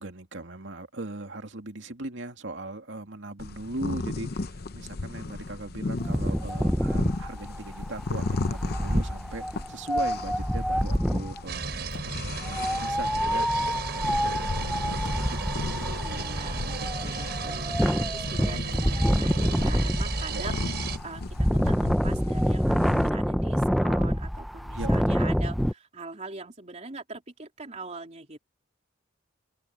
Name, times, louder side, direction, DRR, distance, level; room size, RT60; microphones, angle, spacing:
voice 1, 0.0-15.0 15.3-17.2 20.3-20.4 24.7-25.3, right 2 dB, 75° right, 2.5 m, -39 dB
sound 1, 3.4-23.1, left 3 dB, 55° left, 0.7 m, -36 dB
Wind, 6.0-11.4 12.5-25.7, equal, ahead, 0.6 m, -27 dB
sound 2, 11.5-21.0, right 3 dB, 60° right, 5.9 m, -34 dB
voice 2, 16.0-20.8 21.0-28.4, right 3 dB, 40° right, 3.4 m, -42 dB
open air
head